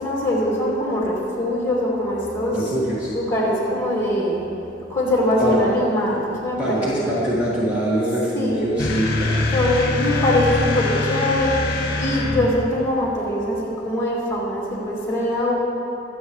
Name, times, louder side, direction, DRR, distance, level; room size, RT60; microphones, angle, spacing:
voice 1, 0.0-2.6 3.0-4.4 4.9-7.1 8.3-8.8 9.5-15.6, left 1 dB, 15° left, -6 dB, 2.6 m, -22 dB
voice 2, 2.5-3.1 5.4-5.6 6.6-9.5, right 1 dB, 5° right, -10 dB, 2.0 m, -24 dB
sound 1, 8.8-12.7, left 2 dB, 55° left, 1.3 m, -23 dB
23.0 x 8.0 x 3.2 m, 2.8 s
head